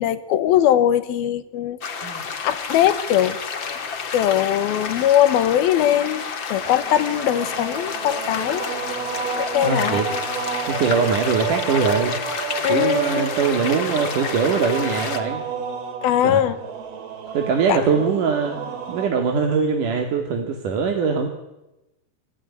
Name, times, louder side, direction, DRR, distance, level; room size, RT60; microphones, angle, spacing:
voice 1, 0.0-2.1 2.4-3.8 4.1-8.7 9.3-10.1 12.6-13.3 16.0-16.6 17.7-17.8, left 11 dB, 75° left, 14 dB, 3.1 m, -21 dB
sound 1, 1.8-15.2, left 5 dB, 40° left, 2.0 m, -30 dB
sound 2, 6.5-19.1, right 7 dB, 70° right, 5.1 m, -31 dB
voice 2, 9.6-10.1 10.7-12.2 12.7-15.4 16.2-16.4 17.3-18.6 18.9-21.3, right 5 dB, 55° right, 4 dB, 3.8 m, -22 dB
27.0 x 21.5 x 9.9 m, 0.95 s
omnidirectional pair, 4.6 m